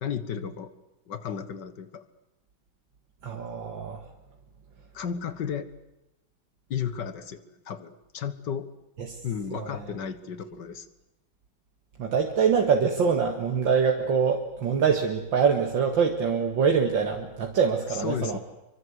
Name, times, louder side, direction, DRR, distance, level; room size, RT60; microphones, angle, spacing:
voice 1, 0.0-0.7 1.1-2.0 4.9-5.7 6.7-8.7 9.2-10.9 18.0-18.4, left 7 dB, 60° left, 12 dB, 2.1 m, -33 dB
voice 2, 3.2-4.0 9.0-9.2 9.5-9.9 12.0-18.4, right 6 dB, 70° right, 2 dB, 2.6 m, -24 dB
25.0 x 24.5 x 8.2 m, 0.95 s
omnidirectional pair, 2.2 m